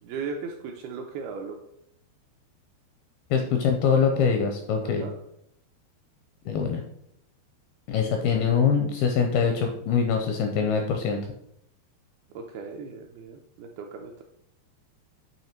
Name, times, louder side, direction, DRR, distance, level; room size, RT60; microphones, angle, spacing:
voice 1, 0.0-1.6 4.8-5.1 12.3-14.2, right 5 dB, 80° right, 2 dB, 2.2 m, -37 dB
voice 2, 3.3-5.0 6.5-6.8 7.9-11.2, left 6 dB, 85° left, 4 dB, 2.2 m, -23 dB
9.0 x 3.2 x 4.3 m, 0.76 s
omnidirectional pair, 4.9 m